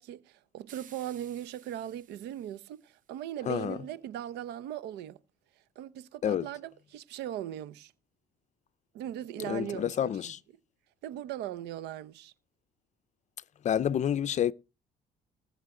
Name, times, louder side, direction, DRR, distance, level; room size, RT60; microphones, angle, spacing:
voice 1, 0.0-5.2 5.8-7.9 8.9-10.3 11.0-12.3, right 11 dB, 85° right, 0.8 m, -39 dB
sound 1, 0.7-3.1, right 9 dB, 50° right, 1.2 m, -57 dB
voice 2, 3.5-3.8 6.2-6.5 9.4-10.4 13.6-14.5, left 10 dB, 45° left, 0.6 m, -29 dB
20.0 x 7.3 x 3.8 m
cardioid pair, 110°, 17 cm